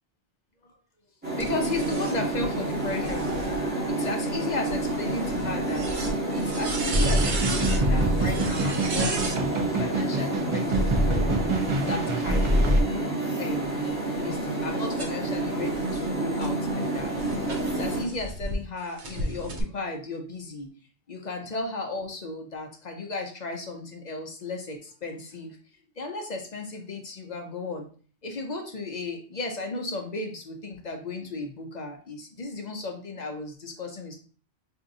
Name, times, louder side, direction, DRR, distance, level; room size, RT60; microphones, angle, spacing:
Amsterdam Central Station, 1.2-18.0, right 2 dB, 10° right, 1.6 m, -29 dB
voice 1, 1.3-3.5 3.9-5.9 6.3-9.4 9.8-11.4 11.9-12.6 13.4-13.9 14.2-20.7 21.1-25.6 26.0-27.9 28.2-34.1, left 2 dB, 50° left, 3 dB, 0.6 m, -35 dB
sound 1, 1.4-9.4 10.5-12.9 13.5-18.6 19.0-19.6, right 2 dB, 85° right, 1.1 m, -36 dB
sound 2, 6.9-12.8, right 1 dB, 55° right, 0.3 m, -25 dB
4.7 x 2.7 x 2.5 m, 0.41 s
omnidirectional pair, 1.1 m